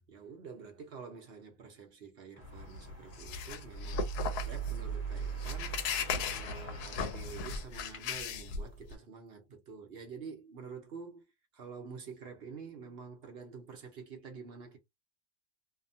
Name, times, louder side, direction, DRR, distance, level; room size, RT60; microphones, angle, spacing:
voice 1, 0.0-4.1 4.4-5.9 6.3-11.2 11.5-14.8, right 5 dB, 50° right, 0.7 m, -48 dB
sound 1, 2.3-7.7, right 2 dB, 30° left, 0.8 m, -49 dB
sound 2, 2.4-9.0, left 1 dB, 75° left, 1.1 m, -36 dB
2.8 x 2.2 x 2.6 m
omnidirectional pair, 1.8 m